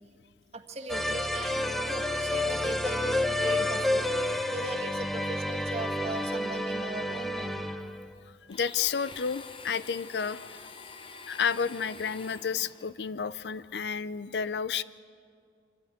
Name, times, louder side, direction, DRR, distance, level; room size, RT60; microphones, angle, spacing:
voice 1, 0.5-7.7, right 2 dB, 35° right, 3 dB, 1.6 m, -39 dB
sound 1, 0.9-8.1, left 1 dB, ahead, 0.6 m, -30 dB
voice 2, 8.5-10.7 11.3-14.8, left 6 dB, 75° left, 16 dB, 0.5 m, -31 dB
Domestic sounds home sounds, 8.5-12.9, left 4 dB, 30° left, 1.0 m, -46 dB
25.5 x 13.5 x 9.4 m, 2.3 s
head